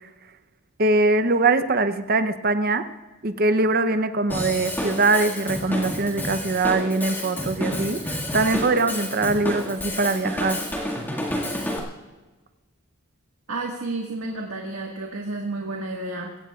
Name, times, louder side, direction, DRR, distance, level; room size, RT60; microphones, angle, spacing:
voice 1, 0.8-2.8 3.2-10.6, right 3 dB, 45° right, 10 dB, 0.8 m, -22 dB
Drum kit / Drum, 4.3-11.8, left 1 dB, 10° left, 2.0 m, -30 dB
voice 2, 13.5-16.4, right 2 dB, 80° right, -1 dB, 1.8 m, -31 dB
23.5 x 17.0 x 2.4 m, 1.2 s
head